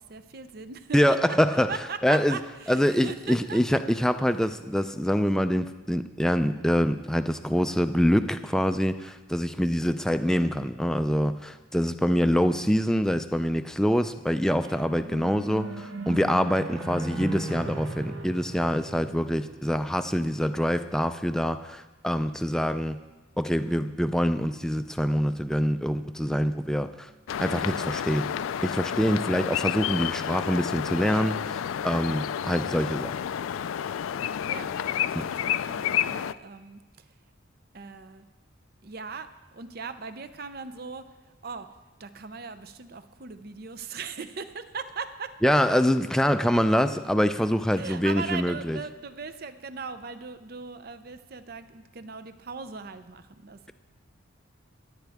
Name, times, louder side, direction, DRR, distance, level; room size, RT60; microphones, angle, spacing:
voice 1, 0.0-1.0 1.7-3.6 14.6-14.8 34.4-34.7 35.0-36.8 37.7-38.2 38.8-39.3 39.5-41.7 42.0-45.3 47.7-53.7, right 5 dB, 50° right, 11 dB, 0.6 m, -39 dB
voice 2, 0.9-1.7 2.0-2.4 2.7-23.0 23.4-27.1 27.4-28.3 28.6-33.1 35.1-35.3 45.4-48.8, equal, 5° left, 9 dB, 0.4 m, -25 dB
sound 1, 14.6-20.0, right 2 dB, 75° right, 1.1 m, -37 dB
sound 2, 27.3-36.3, left 9 dB, 85° left, 0.3 m, -30 dB
26.5 x 9.1 x 3.5 m, 1.2 s
head